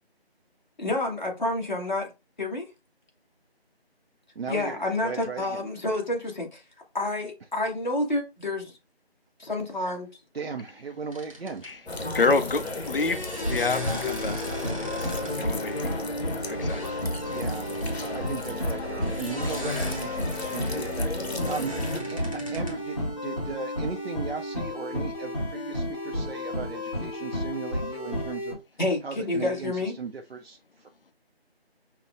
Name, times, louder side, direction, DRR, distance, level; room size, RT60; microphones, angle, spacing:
voice 1, 0.8-2.1 2.4-2.7 4.5-6.6 6.9-8.7 9.4-10.1 28.8-30.0, left 2 dB, 45° left, 1.3 m, -29 dB
voice 2, 4.4-5.7 10.3-12.1 17.2-17.7 18.1-21.8 22.0-28.6 29.0-30.9, right 5 dB, 70° right, 0.6 m, -37 dB
sound 1, 11.1-11.7 12.8-15.5 15.8-16.1 16.5-18.0 19.0-22.9, equal, 35° right, 0.7 m, -40 dB
sound 2, 11.9-22.0, left 2 dB, 80° left, 0.9 m, -34 dB
voice 3, 12.1-14.4 14.8-16.0 16.5-16.8 26.8-27.3, left 3 dB, 60° left, 0.5 m, -29 dB
sound 3, 13.4-28.5, left 1 dB, 30° left, 1.1 m, -32 dB
5.6 x 2.1 x 2.5 m
figure-of-eight pair, 175°, 31 cm